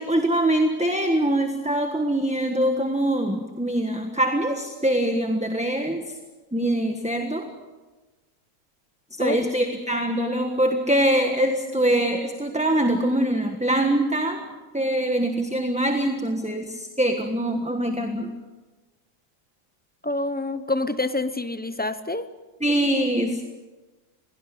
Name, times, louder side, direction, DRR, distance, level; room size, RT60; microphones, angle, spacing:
voice 1, 0.0-6.0 6.5-7.5 9.2-14.5 14.7-18.3 22.6-23.4, right 1 dB, 5° right, 5 dB, 1.2 m, -23 dB
voice 2, 20.0-22.3, left 2 dB, 15° left, 11 dB, 0.3 m, -27 dB
22.0 x 18.0 x 8.5 m, 1.2 s
omnidirectional pair, 1.7 m